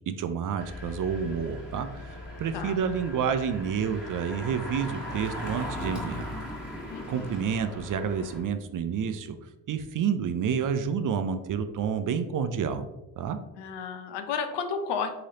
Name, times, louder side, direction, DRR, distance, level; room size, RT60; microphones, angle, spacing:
voice 1, 0.0-6.3 7.1-9.4 9.7-12.9 13.2-13.4, right 7 dB, 50° right, 9 dB, 0.5 m, -29 dB
Engine, 0.6-8.4, left 1 dB, ahead, 1.5 m, -38 dB
voice 2, 6.9-7.3 13.6-15.1, left 6 dB, 80° left, 7 dB, 0.6 m, -32 dB
3.8 x 3.2 x 2.7 m, 0.97 s
supercardioid pair, 60°, 41 cm